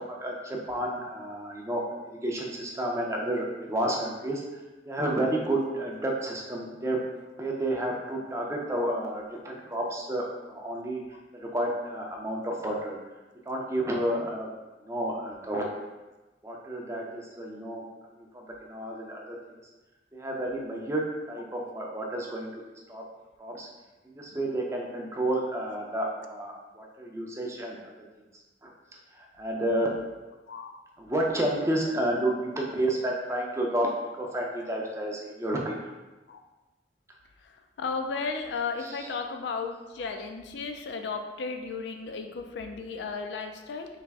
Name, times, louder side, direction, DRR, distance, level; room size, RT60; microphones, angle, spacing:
voice 1, 0.2-1.8 2.2-4.4 4.9-7.0 7.4-11.0 11.3-13.0 13.5-14.5 14.8-15.7 16.4-17.8 18.2-19.4 20.1-21.0 21.3-22.6 22.9-23.0 23.4-23.7 24.0-27.8 28.6-28.7 29.1-29.9 31.0-33.9 34.2-35.8 38.8-39.1, right 1 dB, 15° right, -1 dB, 0.4 m, -30 dB
voice 2, 37.8-43.9, left 4 dB, 80° left, 5 dB, 0.4 m, -34 dB
3.3 x 2.4 x 3.4 m, 1.1 s
head